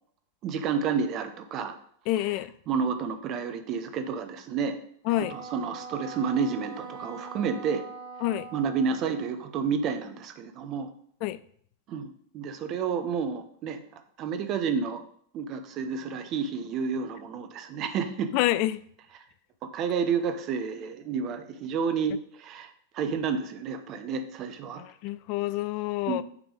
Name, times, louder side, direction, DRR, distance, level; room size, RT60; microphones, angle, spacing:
voice 1, 0.4-1.7 2.7-4.8 5.3-7.8 8.5-10.9 11.9-15.0 15.3-18.3 19.6-24.8 26.1-26.2, right 6 dB, 35° right, 8 dB, 0.8 m, -30 dB
voice 2, 2.1-2.5 5.1-5.4 8.2-8.5 11.2-11.4 18.3-18.8 24.7-26.2, left 15 dB, 45° left, 15 dB, 0.3 m, -27 dB
Wind instrument woodwind instrument, 5.1-9.6, right 4 dB, 70° right, 2.5 m, -43 dB
8.1 x 3.5 x 5.1 m, 0.63 s
figure-of-eight pair, 90°, 0 cm